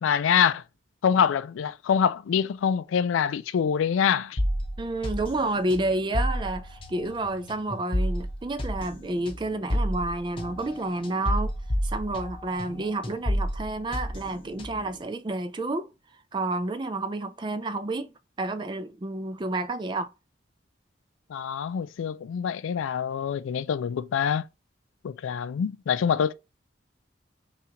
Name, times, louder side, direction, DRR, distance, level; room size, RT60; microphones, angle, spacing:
voice 1, 0.0-0.6 1.0-4.4 12.7-12.8 21.3-24.4 25.0-26.3, left 7 dB, 90° left, 0.3 m, -25 dB
sound 1, 4.4-12.8 13.0-15.0, equal, 30° left, 0.7 m, -30 dB
voice 2, 4.8-11.5 11.8-15.9 16.3-20.1, right 2 dB, 25° right, 0.4 m, -30 dB
5.7 x 2.4 x 2.9 m
head